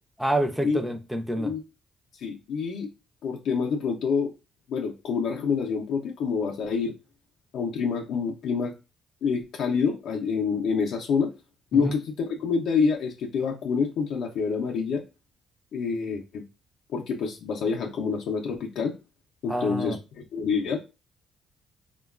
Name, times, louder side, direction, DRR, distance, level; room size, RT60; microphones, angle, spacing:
voice 1, 0.2-1.5 11.7-12.0 19.5-20.0, right 1 dB, 5° right, 0.4 m, -27 dB
voice 2, 2.2-2.9 3.2-4.3 4.7-6.9 7.5-8.7 9.2-11.3 11.7-15.0 15.7-16.4 16.9-19.0 19.4-20.8, left 5 dB, 75° left, 0.4 m, -27 dB
3.0 x 2.2 x 2.2 m
cardioid pair, 90°, 0 cm